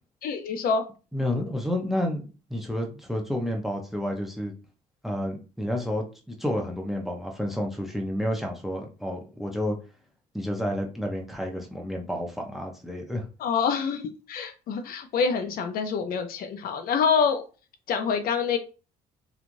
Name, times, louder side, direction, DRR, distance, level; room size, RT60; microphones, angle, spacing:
voice 1, 0.2-0.8 13.4-17.4 17.9-18.6, left 6 dB, 60° left, 7 dB, 0.5 m, -26 dB
voice 2, 1.1-4.5 5.0-9.8 10.3-13.2, left 1 dB, ahead, 2 dB, 0.6 m, -30 dB
3.1 x 2.4 x 2.5 m, 0.34 s
cardioid pair, 110°, 17 cm